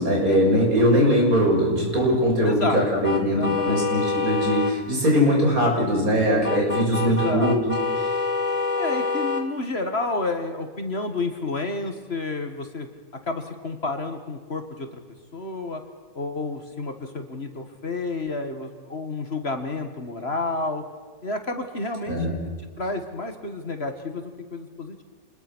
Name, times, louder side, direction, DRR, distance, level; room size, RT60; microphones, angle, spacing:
voice 1, 0.0-7.7 8.0-8.1 22.1-22.3, equal, 85° right, -1 dB, 7.5 m, -21 dB
voice 2, 2.4-2.8 3.3-3.9 7.0-7.6 8.8-12.9 13.3-14.9 15.3-15.8 16.1-20.8 21.2-22.4 22.8-25.0, left 3 dB, 45° left, 6 dB, 2.2 m, -30 dB
sound 1, 3.0-4.8 6.4-9.5, left 4 dB, 25° left, 1.9 m, -26 dB
27.5 x 22.0 x 6.3 m, 1.5 s
omnidirectional pair, 1.5 m